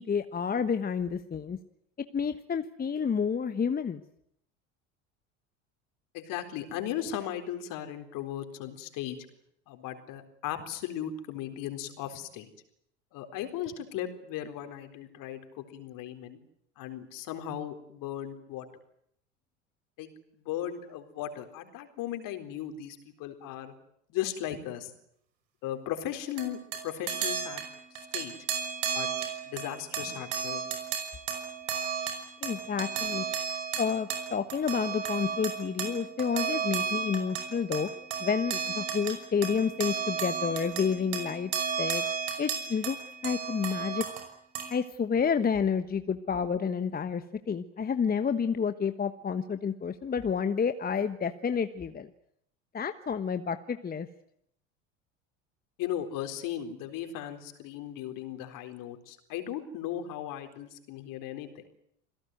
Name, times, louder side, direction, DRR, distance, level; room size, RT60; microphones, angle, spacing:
voice 1, 0.0-1.6 2.1-4.0 32.4-33.2 33.8-37.9 38.2-41.5 41.8-42.0 42.4-43.0 43.2-44.0 44.7-52.1 52.7-54.1, left 6 dB, 25° left, 10 dB, 1.3 m, -29 dB
voice 2, 6.1-9.2 9.7-12.5 13.1-16.4 16.8-18.7 20.0-20.1 20.4-23.7 24.1-24.9 25.6-27.6 28.1-28.3 28.9-29.1 29.4-30.7 55.8-61.6, left 11 dB, 55° left, 7 dB, 4.2 m, -37 dB
sound 1, 26.4-44.2 44.5-44.7, right 7 dB, 75° right, 5.6 m, -34 dB
27.5 x 17.5 x 9.3 m, 0.72 s
hypercardioid pair, 80°, 38 cm